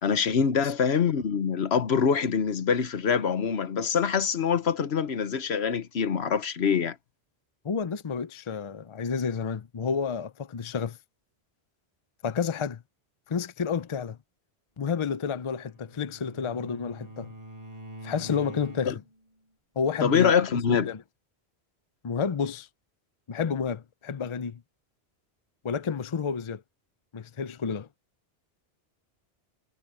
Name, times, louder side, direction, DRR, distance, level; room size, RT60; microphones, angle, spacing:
voice 1, 0.0-6.9 18.9-19.0 20.0-20.9, left 6 dB, 80° left, 1.3 m, -25 dB
voice 2, 7.6-11.0 12.2-12.8 13.3-14.2 14.8-17.3 18.0-19.0 19.8-20.3 20.7-21.0 22.0-22.7 23.3-24.6 25.6-26.6 27.1-27.9, left 6 dB, 35° left, 0.6 m, -30 dB
Bowed string instrument, 15.4-19.2, right 1 dB, 40° right, 4.3 m, -45 dB
omnidirectional pair, 1.1 m